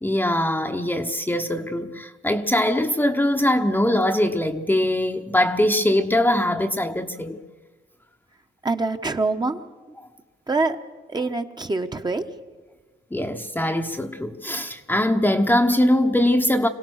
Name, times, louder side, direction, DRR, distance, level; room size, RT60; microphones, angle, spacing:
voice 1, 0.0-7.4 13.1-16.7, left 1 dB, 10° left, 1.0 m, -22 dB
voice 2, 8.6-9.6 10.5-10.8 11.1-12.2, right 3 dB, 20° right, 1.1 m, -24 dB
25.5 x 16.5 x 6.4 m
cardioid pair, 90°, 20 cm